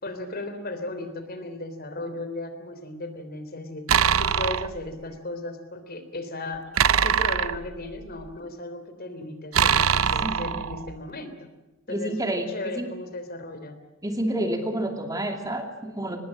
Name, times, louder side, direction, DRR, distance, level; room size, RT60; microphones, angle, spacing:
voice 1, 0.0-3.9 4.2-6.7 7.0-11.3 11.9-12.1 12.5-13.8, left 2 dB, 50° left, 9 dB, 3.4 m, -36 dB
sound 1, 3.9-4.8 6.8-8.3 9.5-11.0, right 7 dB, 85° right, 0.7 m, -23 dB
voice 2, 10.2-10.7 11.9-12.5 12.8-12.9 14.0-16.2, right 1 dB, 15° right, 4 dB, 2.5 m, -29 dB
23.5 x 20.5 x 7.6 m, 1.1 s
head